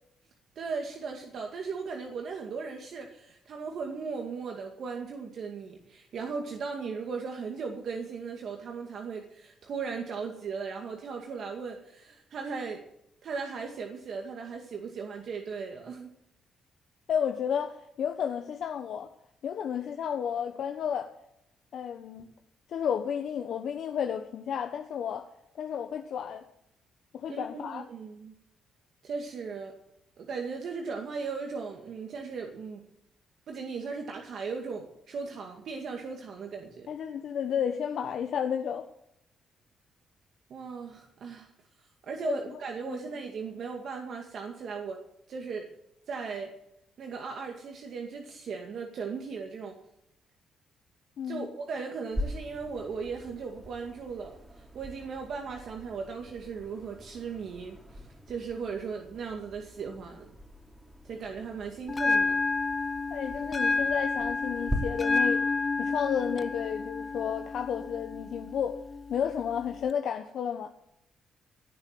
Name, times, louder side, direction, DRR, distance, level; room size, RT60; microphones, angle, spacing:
voice 1, 0.6-12.8 13.2-16.1 27.3-28.3 29.0-29.7 30.2-32.8 33.5-36.9 40.5-41.5 42.0-45.0 45.3-45.7 46.1-46.5 47.0-49.8 51.2-54.4 54.7-60.3 61.0-62.4, right 5 dB, 60° right, 2 dB, 2.2 m, -37 dB
voice 2, 17.1-19.1 19.4-21.1 21.7-22.2 22.7-25.3 25.6-26.4 27.1-27.8 36.9-38.9 42.2-42.4 42.9-43.0 51.2-51.5 63.1-65.5 65.8-68.8 69.1-70.7, left 8 dB, 65° left, 5 dB, 1.1 m, -32 dB
sound 1, 52.1-64.8, left 1 dB, 10° right, 3.6 m, -42 dB
Bell, 61.9-69.9, left 4 dB, 25° left, 0.8 m, -30 dB
17.5 x 7.3 x 7.9 m, 0.78 s
cardioid pair, 90°, 0 cm